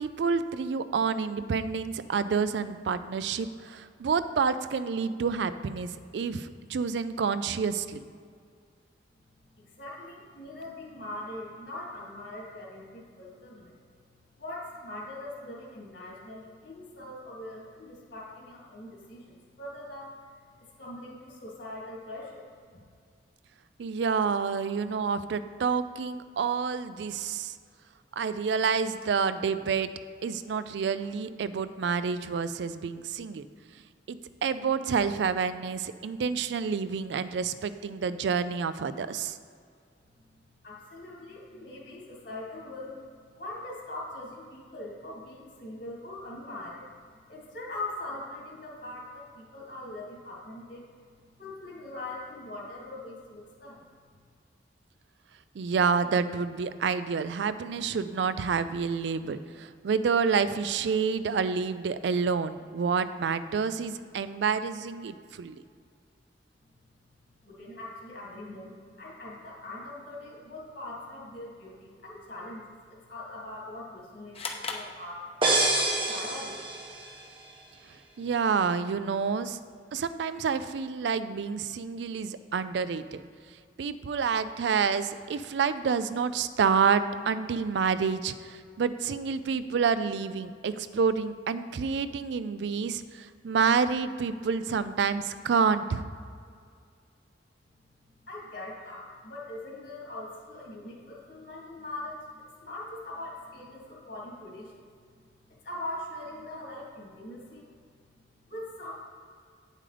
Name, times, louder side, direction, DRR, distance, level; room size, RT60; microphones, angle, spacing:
voice 1, 0.0-8.0 23.8-27.6 28.1-29.9 30.2-33.4 34.1-39.4 55.5-65.6 78.2-79.6 79.9-83.2 83.8-96.0, right 5 dB, 70° right, 13 dB, 0.4 m, -28 dB
voice 2, 9.6-13.7 14.4-20.1 20.6-22.5 40.6-46.9 47.3-50.9 51.4-53.8 67.4-75.3 75.7-76.7 98.2-104.8 105.6-107.6 108.5-108.9, left 1 dB, 65° left, -3 dB, 2.2 m, -41 dB
sound 1, 74.3-75.8, left 4 dB, 35° left, 0.7 m, -38 dB
sound 2, 75.4-77.2, right 2 dB, 30° right, 1.1 m, -27 dB
9.1 x 7.4 x 3.3 m, 2.2 s
head